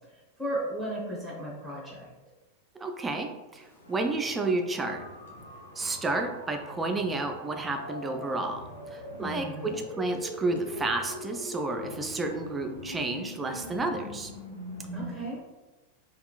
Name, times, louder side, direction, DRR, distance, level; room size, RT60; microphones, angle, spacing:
voice 1, 0.1-2.1 9.2-9.7 14.9-15.4, right 1 dB, 5° left, -6 dB, 0.9 m, -35 dB
voice 2, 2.8-5.0 5.8-8.6 8.9-14.3, right 2 dB, 15° right, 4 dB, 0.4 m, -31 dB
Wind, 3.5-15.3, equal, 70° left, 0.6 m, -49 dB
sound 1, 4.8-15.1, equal, 85° right, 0.5 m, -43 dB
3.6 x 2.3 x 2.3 m, 1.2 s
figure-of-eight pair, 90°, 0 cm